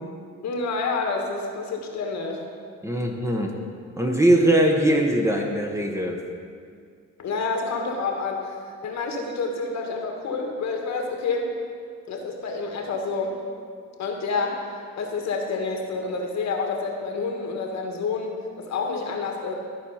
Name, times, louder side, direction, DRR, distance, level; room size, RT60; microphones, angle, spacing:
voice 1, 0.4-2.4 7.2-11.5 12.1-13.4 14.0-14.7 15.0-19.5, left 4 dB, 65° left, 2 dB, 1.5 m, -28 dB
voice 2, 2.8-3.5 4.0-6.2, right 1 dB, 10° right, 1 dB, 1.1 m, -21 dB
13.0 x 4.4 x 5.7 m, 2.1 s
cardioid pair, 90°, 30 cm